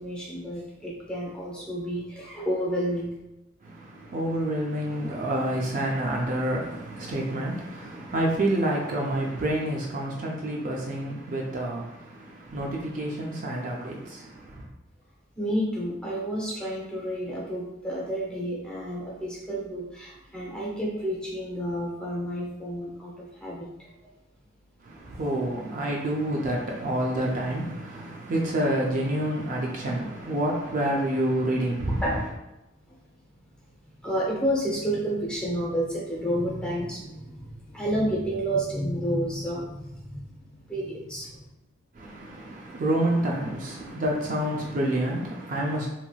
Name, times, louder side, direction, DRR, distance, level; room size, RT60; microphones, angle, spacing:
voice 1, 0.0-3.1 15.4-23.9 31.8-32.2 32.9-33.0 34.0-41.5, equal, 5° left, 0.6 m, -30 dB
voice 2, 3.6-14.7 24.8-32.0 41.9-45.9, right 1 dB, 40° right, 0.4 m, -28 dB
2.9 x 2.8 x 2.3 m
head